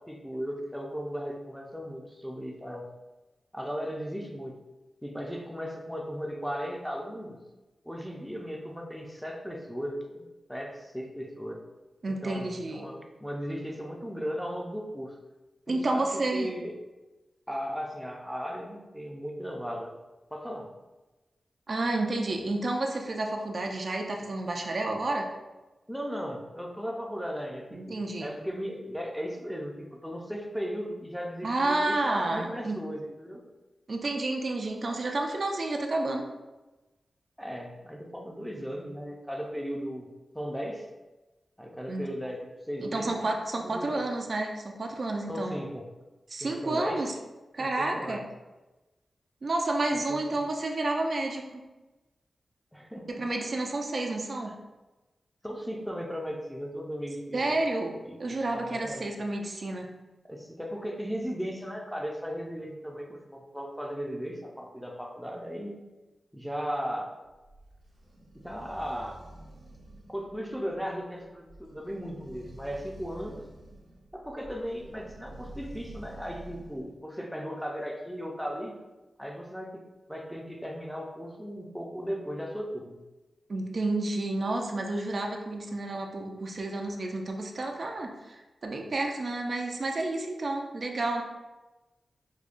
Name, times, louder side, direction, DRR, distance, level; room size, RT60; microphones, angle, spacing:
voice 1, 0.0-2.9 3.5-4.6 5.0-7.4 7.8-11.6 12.1-15.2 15.7-16.8 17.5-19.9 20.3-20.7 25.9-33.4 37.4-40.1 40.3-40.9 41.6-43.2 43.6-44.1 45.3-45.8 46.4-47.0 47.6-48.2 50.1-50.2 52.7-53.2 55.4-57.6 58.0-59.0 60.2-65.8 66.3-67.1 68.3-69.2 70.1-73.4 74.1-78.8 79.2-79.8 80.1-83.0, equal, ahead, 1 dB, 0.5 m, -36 dB
voice 2, 12.0-12.9 15.7-16.5 21.7-25.3 27.7-28.3 31.4-32.8 33.9-36.2 41.9-42.1 42.8-45.6 46.3-47.1 47.5-48.2 49.4-51.6 53.1-54.6 57.3-59.9 83.5-91.2, right 2 dB, 55° right, 2 dB, 0.4 m, -30 dB
sound 1, 67.2-76.9, right 1 dB, 80° right, 1.0 m, -49 dB
4.8 x 2.2 x 2.5 m, 1.1 s
cardioid pair, 70°, 0 cm